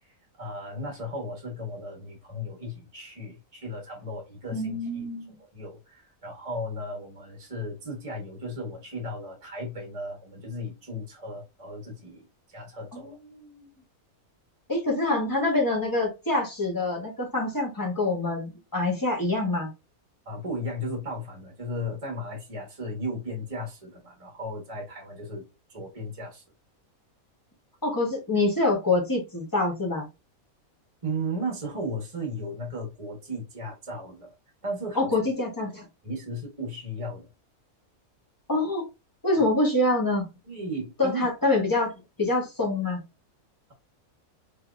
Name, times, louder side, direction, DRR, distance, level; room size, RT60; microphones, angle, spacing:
voice 1, 0.4-5.0 5.5-13.2 20.2-26.4 31.0-34.3 34.6-35.1 36.0-37.3 40.5-41.3, equal, 25° right, 1.0 m, -35 dB
voice 2, 4.5-5.4 12.9-13.6 14.7-19.7 27.8-30.1 34.9-35.9 38.5-38.9 39.2-40.3 41.0-43.0, left 2 dB, 15° left, 0.9 m, -26 dB
3.3 x 3.0 x 2.4 m
omnidirectional pair, 1.5 m